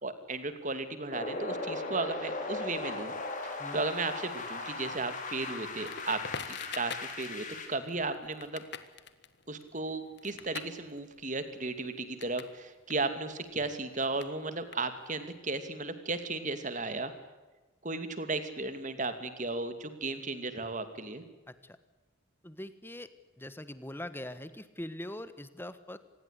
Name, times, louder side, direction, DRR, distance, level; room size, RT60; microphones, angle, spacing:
voice 1, 0.0-3.1 3.4-6.2 6.5-8.6 9.5-17.1 17.8-21.2, right 3 dB, 35° right, 10 dB, 2.6 m, -35 dB
sound 1, 1.1-7.7, left 2 dB, 40° left, 4.5 m, -38 dB
Crackle, 5.8-12.6 12.8-15.3, left 6 dB, 55° left, 1.6 m, -45 dB
voice 2, 21.5-21.8 22.4-23.1 23.4-26.0, left 1 dB, 10° left, 13 dB, 1.4 m, -42 dB
26.0 x 20.5 x 8.3 m, 1.2 s
head